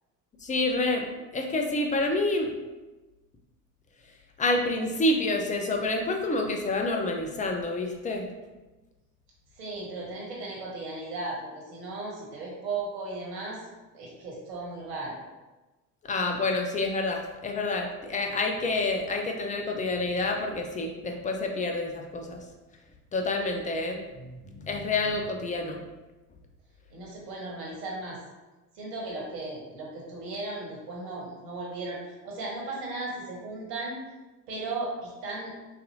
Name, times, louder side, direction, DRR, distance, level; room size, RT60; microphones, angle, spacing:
voice 1, 0.4-2.6 4.4-8.3 16.1-22.4 23.1-24.3 24.6-25.8, left 2 dB, 15° left, 2 dB, 0.5 m, -28 dB
voice 2, 9.6-13.6 13.9-15.2 26.9-28.2 28.7-32.0 32.2-34.0 34.5-35.5, right 2 dB, 70° right, -3 dB, 1.3 m, -36 dB
3.9 x 2.7 x 2.7 m, 1.1 s
hypercardioid pair, 60°, 48 cm